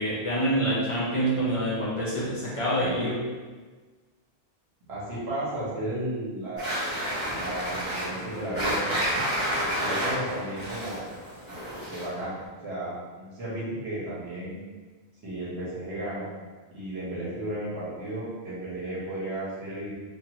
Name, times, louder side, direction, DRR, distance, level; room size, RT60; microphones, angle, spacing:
voice 1, 0.0-3.2, right 1 dB, 35° left, -8 dB, 0.6 m, -26 dB
voice 2, 4.9-6.7 7.4-9.1 9.8-11.1 11.9-12.3 12.6-14.6 15.2-16.3 16.7-19.9, right 1 dB, 80° right, -8 dB, 1.3 m, -34 dB
sound 1, 6.6-12.2, equal, 15° right, 1.1 m, -30 dB
2.6 x 2.5 x 2.9 m, 1.4 s
omnidirectional pair, 1.1 m